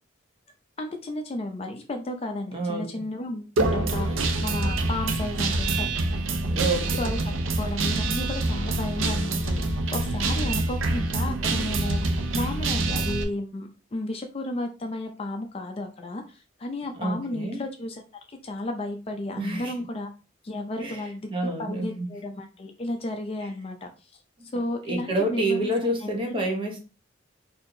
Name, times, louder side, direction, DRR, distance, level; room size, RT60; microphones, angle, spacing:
voice 1, 0.8-5.9 7.0-7.2 7.6-18.0 18.3-20.1 20.4-23.9 24.5-25.7 26.0-26.5, left 1 dB, 30° left, 4 dB, 0.4 m, -33 dB
voice 2, 2.5-3.0 6.4-7.1 17.0-17.6 19.4-19.7 20.8-21.0 21.3-22.1 24.8-26.8, right 1 dB, 25° right, 1 dB, 0.8 m, -28 dB
Guitar, 3.6-13.2, right 2 dB, 85° right, 0.6 m, -26 dB
4.2 x 2.7 x 2.6 m, 0.33 s
head